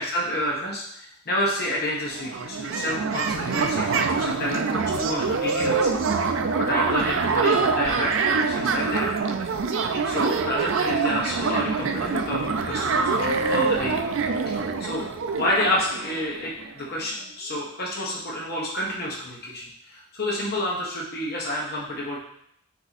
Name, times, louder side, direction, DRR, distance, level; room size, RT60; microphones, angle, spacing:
voice 1, 0.0-9.4 10.0-14.0 14.5-22.2, left 1 dB, 45° left, -4 dB, 0.9 m, -29 dB
sound 1, 1.8-1.9 2.1-16.7, right 4 dB, 65° right, 0.4 m, -25 dB
4.4 x 2.7 x 4.0 m, 0.71 s
head